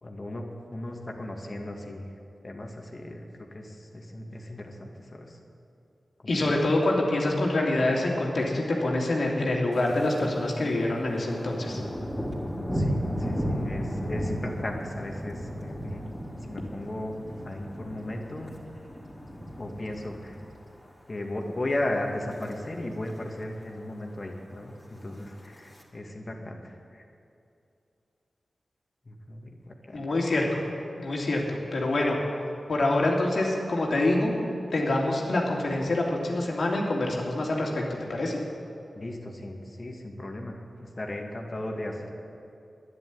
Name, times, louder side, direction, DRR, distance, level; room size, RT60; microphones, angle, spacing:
voice 1, 0.0-2.1 2.4-5.4 6.2-6.4 12.7-16.0 16.5-17.2 17.4-18.5 19.6-20.4 21.1-27.0 29.1-30.1 38.9-42.1, left 1 dB, 45° left, 1 dB, 2.3 m, -36 dB
voice 2, 6.3-11.8 29.9-30.6 31.0-32.2 32.7-34.3 34.7-37.8 38.1-38.4, left 2 dB, 70° left, -2 dB, 2.8 m, -26 dB
Thunder, 9.7-10.3 10.6-20.9 21.3-21.6 22.1-22.5 22.8-22.9 23.1-23.2 23.5-24.1 24.9-25.8, equal, 5° left, 3.6 m, -34 dB
11.0 x 10.5 x 9.5 m, 2.7 s
cardioid pair, 50°, 0 cm